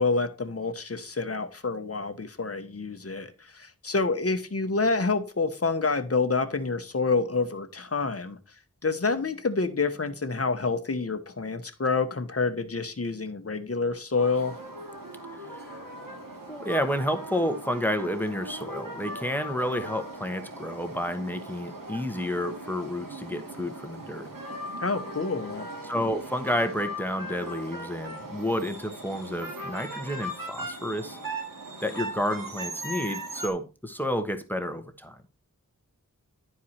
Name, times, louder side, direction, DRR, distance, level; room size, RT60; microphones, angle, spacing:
voice 1, 0.0-8.4 8.8-14.6 24.8-25.7, left 4 dB, 45° left, 1.3 m, -28 dB
sound 1, 14.2-33.5, right 1 dB, 85° right, 2.4 m, -39 dB
voice 2, 16.5-24.3 25.8-31.2 31.8-35.2, equal, 5° left, 1.3 m, -30 dB
11.5 x 4.7 x 4.3 m
wide cardioid pair, 60°, 32 cm